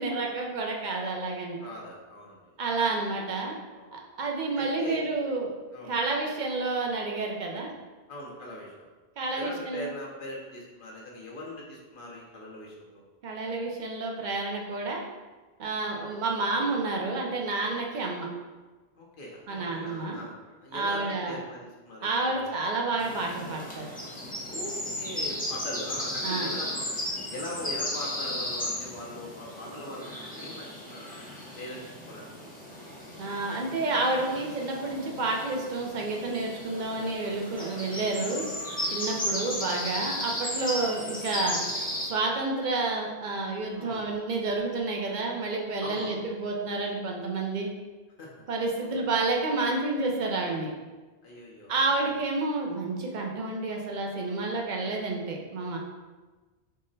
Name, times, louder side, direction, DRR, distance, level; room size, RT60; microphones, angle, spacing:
voice 1, 0.0-1.6 2.6-3.6 3.9-5.5 5.9-7.7 9.2-9.9 13.2-15.0 15.6-18.3 19.5-20.2 20.7-21.4 22.0-23.9 26.2-26.5 33.2-38.5 38.9-41.6 42.0-47.7 48.5-50.7 51.7-55.8, right 3 dB, 55° right, 0 dB, 0.6 m, -30 dB
voice 2, 1.6-2.6 3.2-3.3 3.8-3.9 4.6-5.1 5.7-6.0 8.1-8.9 9.3-13.1 15.6-15.8 19.0-22.5 24.5-26.8 27.3-31.2 31.6-32.5 39.4-39.5 43.7-44.0 45.8-46.2 48.2-48.3 48.8-49.0 51.2-51.8, left 1 dB, 60° left, -2 dB, 0.8 m, -41 dB
sound 1, 23.0-42.1, left 1 dB, 10° left, 0.5 m, -35 dB
3.7 x 2.0 x 3.8 m, 1.3 s
omnidirectional pair, 1.1 m